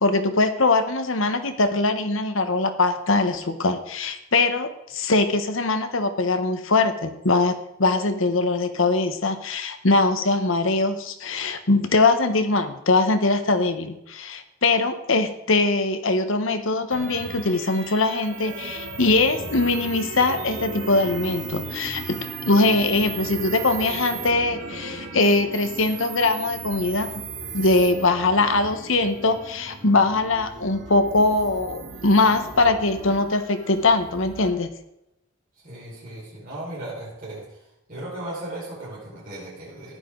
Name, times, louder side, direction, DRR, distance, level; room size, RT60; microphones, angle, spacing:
voice 1, 0.0-22.2 22.5-27.3 27.5-34.7, left 3 dB, 70° left, 9 dB, 1.2 m, -22 dB
sound 1, 16.9-34.5, right 4 dB, 65° right, 2.0 m, -36 dB
voice 2, 35.6-37.6 37.9-40.0, right 1 dB, 40° right, -8 dB, 4.7 m, -36 dB
15.0 x 10.5 x 3.9 m, 0.87 s
head